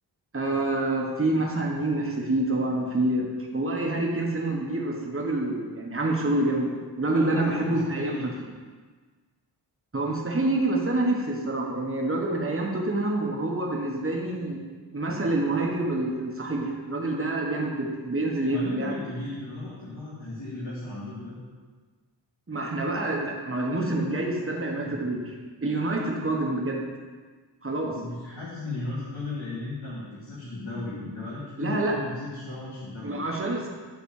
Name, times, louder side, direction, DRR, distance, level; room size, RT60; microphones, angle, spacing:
voice 1, 0.3-3.3 3.5-8.2 9.9-14.6 14.9-19.0 22.5-25.3 25.6-26.8 27.6-28.0 31.6-31.9 33.0-33.7, right 2 dB, 30° right, -1 dB, 1.3 m, -27 dB
voice 2, 7.1-8.3 18.5-21.4 24.8-25.0 27.8-33.2, left 2 dB, 85° left, -11 dB, 2.4 m, -36 dB
8.2 x 4.1 x 6.6 m, 1.4 s
wide cardioid pair, 80°, 44 cm